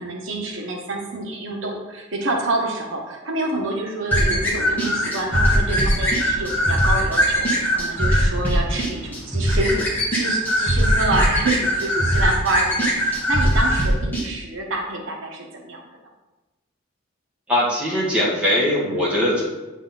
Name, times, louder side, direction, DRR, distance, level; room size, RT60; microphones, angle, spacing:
voice 1, 0.0-15.8, right 2 dB, 80° right, 0 dB, 1.2 m, -27 dB
sound 1, 4.1-14.2, equal, 10° left, 1.7 m, -20 dB
voice 2, 17.5-19.4, left 1 dB, 5° right, -8 dB, 2.1 m, -20 dB
8.2 x 4.1 x 3.9 m, 1.1 s
head